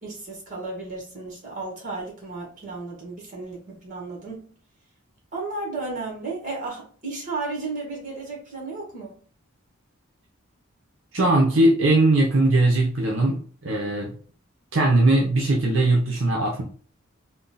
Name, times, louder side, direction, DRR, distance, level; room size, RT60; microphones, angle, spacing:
voice 1, 0.0-4.4 5.3-9.2, right 3 dB, 40° right, 1.6 m, -34 dB
voice 2, 11.1-14.1 14.7-16.6, right 2 dB, 65° right, 0.8 m, -20 dB
3.6 x 2.3 x 4.0 m
head